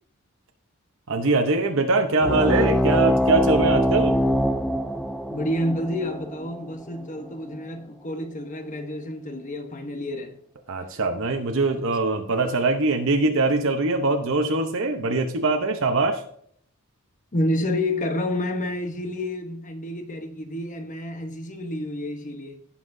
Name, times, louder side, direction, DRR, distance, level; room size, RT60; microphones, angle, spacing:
voice 1, 1.1-4.2 10.7-16.2, right 3 dB, 65° right, 0.8 m, -22 dB
sound 1, 2.2-7.3, equal, ahead, 0.4 m, -23 dB
voice 2, 5.3-10.4 17.3-22.6, left 1 dB, 35° left, 1.0 m, -29 dB
17.0 x 5.8 x 2.7 m
head